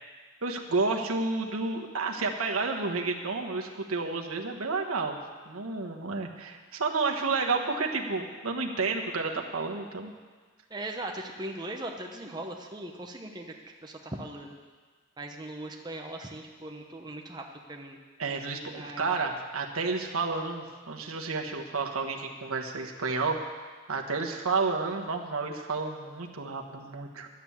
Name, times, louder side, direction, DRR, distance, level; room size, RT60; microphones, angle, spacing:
voice 1, 0.4-5.2 5.5-10.1 18.2-23.4 23.9-27.3, right 4 dB, 90° right, 2 dB, 1.3 m, -31 dB
voice 2, 10.7-13.5 13.8-14.5 15.2-18.0 18.7-19.1, right 1 dB, 20° right, 1 dB, 0.9 m, -39 dB
12.0 x 7.7 x 8.6 m, 1.5 s
head